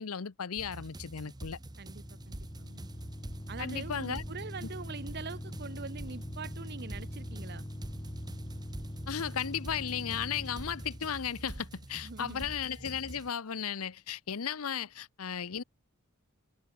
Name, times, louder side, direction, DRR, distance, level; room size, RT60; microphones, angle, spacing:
voice 1, 0.0-1.6 3.6-4.2 9.1-15.6, left 8 dB, 85° left, 0.8 m, -35 dB
sound 1, 0.6-13.3, right 1 dB, 20° right, 0.9 m, -46 dB
sound 2, 1.5-11.3, left 1 dB, 20° left, 1.4 m, -43 dB
voice 2, 1.8-2.9 3.5-7.7 12.0-12.5, right 4 dB, 50° right, 0.9 m, -43 dB
head